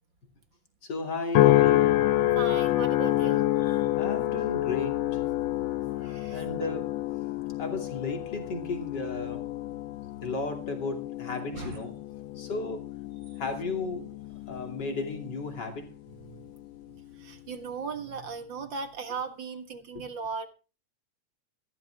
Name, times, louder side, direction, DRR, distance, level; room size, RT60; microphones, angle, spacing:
voice 1, 0.8-2.1 4.0-5.2 6.3-7.0 7.6-9.5 10.2-12.0 12.3-13.0 13.4-14.2 14.5-16.0 19.9-20.1, left 3 dB, 35° left, 3.0 m, -34 dB
sound 1, 1.3-15.8 16.4-16.8, left 15 dB, 70° left, 1.7 m, -28 dB
voice 2, 2.4-3.9 6.0-6.4 11.5-11.8 13.3-13.4 16.3-16.5 16.9-20.5, right 5 dB, 45° right, 1.7 m, -38 dB
15.5 x 13.0 x 3.5 m
omnidirectional pair, 3.7 m